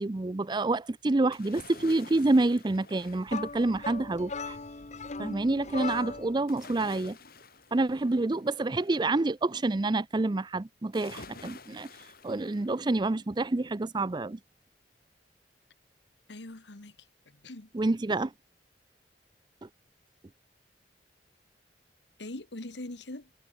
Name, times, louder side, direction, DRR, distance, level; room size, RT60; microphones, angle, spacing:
voice 1, 0.0-4.6 5.2-7.2 7.7-11.9 12.2-14.4 17.7-18.3 19.6-19.7, right 2 dB, 25° right, 0.5 m, -28 dB
sound 1, 1.3-4.1 6.5-9.1 10.9-13.2 13.6-13.7, left 3 dB, 60° left, 5.7 m, -50 dB
sound 2, 3.3-6.4, left 4 dB, 40° left, 1.0 m, -38 dB
voice 2, 16.3-16.9 17.4-17.7 22.2-23.3, left 2 dB, 80° left, 1.8 m, -41 dB
head